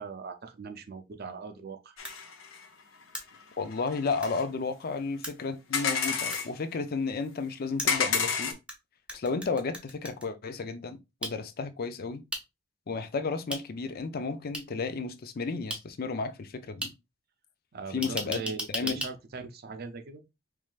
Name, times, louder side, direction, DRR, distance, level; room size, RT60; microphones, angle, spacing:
voice 1, 0.0-2.0 17.7-20.2, right 4 dB, 50° right, 0.6 m, -40 dB
sound 1, 2.0-2.7 3.1-3.4 3.7-4.4 5.7-6.5 7.9-8.5, left 6 dB, 85° left, 0.8 m, -30 dB
sound 2, 2.0-2.2 3.1-3.2 4.2-4.3 5.2-5.3 6.3-6.4 7.8-8.7 9.1-10.3 11.2-11.3 12.3-12.4 13.5-13.6 14.5-14.6 15.7-15.8 16.8-16.9 18.0-19.1, right 1 dB, 5° right, 0.8 m, -35 dB
voice 2, 3.6-8.6 9.1-12.2 12.9-16.9 17.9-18.4 18.7-19.1, left 4 dB, 50° left, 0.5 m, -33 dB
4.7 x 3.2 x 2.4 m
head